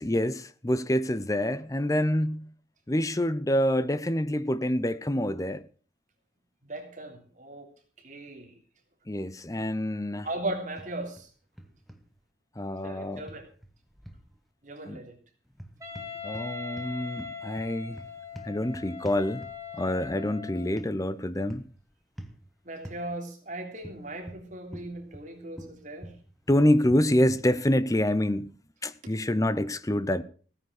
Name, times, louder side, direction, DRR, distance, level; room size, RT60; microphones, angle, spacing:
voice 1, 0.0-2.5 2.9-5.6 9.1-10.3 12.6-13.2 14.9-15.0 16.2-18.0 18.4-19.4 19.8-21.7 26.5-28.5 28.8-30.2, left 1 dB, 20° left, 0.7 m, -26 dB
voice 2, 6.6-7.7 8.0-8.5 10.2-11.3 12.8-13.4 14.6-15.2 22.6-26.1 29.0-29.1, right 2 dB, 45° right, 3.3 m, -38 dB
sound 1, 10.8-11.3 11.6-12.0 13.3-14.3 15.5-16.5 16.8-19.8 20.8-20.9 21.5-21.8 22.2-22.4 22.8-23.0 23.8-25.3 25.6-27.5, equal, ahead, 1.3 m, -45 dB
Wind instrument woodwind instrument, 15.8-20.8, left 5 dB, 20° right, 2.7 m, -40 dB
16.5 x 9.7 x 6.2 m
head